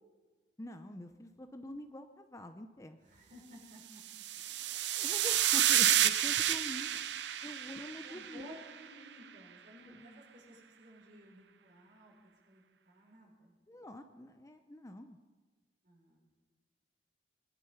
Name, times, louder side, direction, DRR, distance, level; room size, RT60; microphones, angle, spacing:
voice 1, 0.6-3.0 5.0-6.9 7.4-8.6 9.9-10.0 13.7-15.2, left 1 dB, 20° left, 7 dB, 0.6 m, -46 dB
voice 2, 3.0-4.5 7.3-7.6 8.0-13.5 15.8-16.2, equal, 50° right, -3 dB, 6.0 m, -56 dB
sound 1, 4.1-8.6, right 11 dB, 80° right, 0.7 m, -30 dB
22.5 x 11.0 x 5.7 m, 1.3 s
head